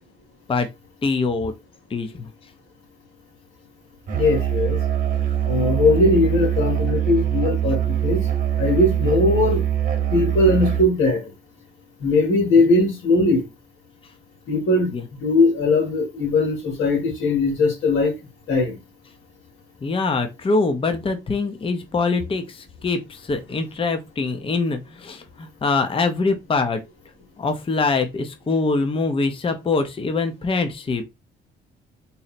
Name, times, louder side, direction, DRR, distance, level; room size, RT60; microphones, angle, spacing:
voice 1, 1.0-1.5 1.9-2.3 14.9-15.0 19.8-26.8 27.4-31.0, left 3 dB, 25° left, 0.6 m, -23 dB
voice 2, 4.1-4.8 5.5-8.2 8.6-9.6 10.1-11.2 12.0-13.4 14.5-18.1 18.5-18.7, left 2 dB, 85° left, 1.7 m, -19 dB
Musical instrument, 4.1-11.0, right 10 dB, 45° right, 1.0 m, -23 dB
4.1 x 2.0 x 4.1 m
cardioid pair, 90°, 20 cm